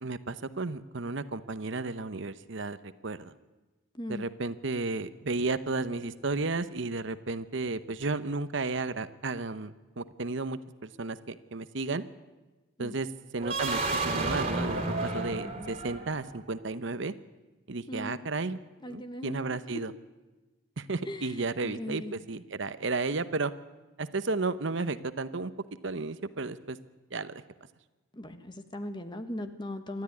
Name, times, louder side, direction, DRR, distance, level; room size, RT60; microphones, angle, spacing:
voice 1, 0.0-3.3 4.1-12.0 12.8-13.1 13.3-17.1 17.7-18.6 18.9-19.9 20.8-23.5 24.0-25.5 25.8-26.8 27.1-27.4, right 3 dB, 60° right, 12 dB, 0.9 m, -33 dB
voice 2, 3.9-4.2 12.8-12.9 17.9-18.2 18.8-19.5 21.1-22.1 28.1-30.0, left 1 dB, 20° left, 8 dB, 1.5 m, -39 dB
sound 1, 13.4-16.4, right 2 dB, 30° right, 3.2 m, -31 dB
27.5 x 13.0 x 9.7 m, 1.2 s
head